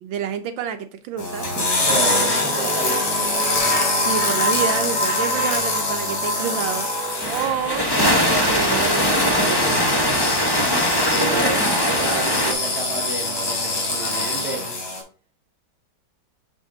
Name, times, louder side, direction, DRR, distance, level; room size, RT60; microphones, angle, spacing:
voice 1, 0.0-1.5 4.0-6.9 7.3-9.9, right 8 dB, 75° right, 8 dB, 1.3 m, -28 dB
sound 1, 1.2-15.0, left 2 dB, 75° left, 3.2 m, -24 dB
voice 2, 1.4-3.6 11.1-14.6, right 2 dB, 50° right, -4 dB, 2.5 m, -30 dB
sound 2, 7.2-12.5, equal, 20° left, 0.6 m, -21 dB
6.7 x 5.1 x 3.8 m, 0.39 s
omnidirectional pair, 2.2 m